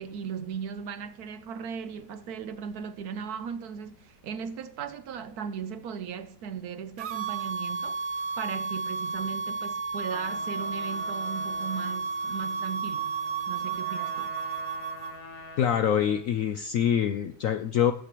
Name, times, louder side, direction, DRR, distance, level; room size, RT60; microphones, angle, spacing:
voice 1, 0.0-8.0 8.4-13.1 13.5-14.4, right 7 dB, 70° right, 1.0 m, -37 dB
sound 1, 7.0-15.1, right 4 dB, 90° right, 0.5 m, -32 dB
Trumpet, 10.0-16.3, left 1 dB, 20° left, 1.2 m, -46 dB
voice 2, 15.6-17.9, left 9 dB, 75° left, 0.7 m, -25 dB
18.0 x 8.3 x 3.0 m
omnidirectional pair, 1.9 m